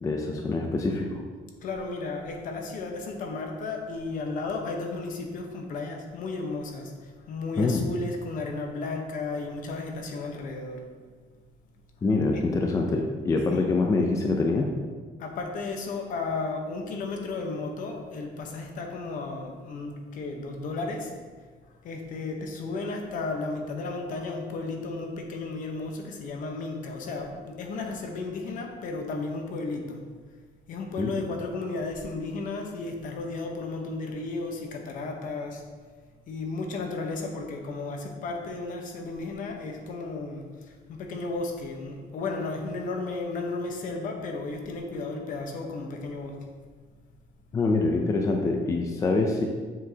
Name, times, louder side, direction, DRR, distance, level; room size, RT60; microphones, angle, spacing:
voice 1, 0.0-1.1 7.6-7.8 12.0-14.7 31.0-31.1 47.5-49.5, left 3 dB, 20° left, 2 dB, 0.5 m, -25 dB
voice 2, 1.6-10.8 12.0-12.4 13.5-13.7 15.2-21.1 21.6-30.0 30.7-35.6 36.3-46.4, left 3 dB, 55° left, 3 dB, 1.0 m, -34 dB
7.4 x 6.1 x 2.8 m, 1.5 s
cardioid pair, 170°, 16 cm